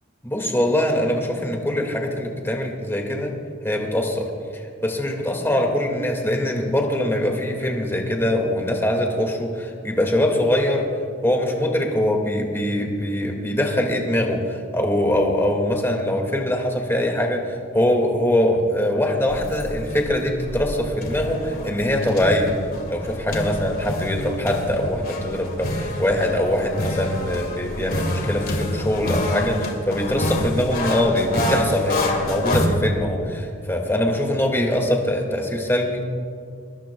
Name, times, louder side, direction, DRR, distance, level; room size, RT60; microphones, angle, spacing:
voice 1, 0.2-3.3 3.6-4.3 4.5-10.9 11.2-22.5 22.9-36.0, left 1 dB, 10° left, 1 dB, 2.0 m, -23 dB
sound 1, 19.3-32.7, left 1 dB, 45° left, 2.2 m, -27 dB
21.5 x 21.0 x 2.3 m, 2.3 s
head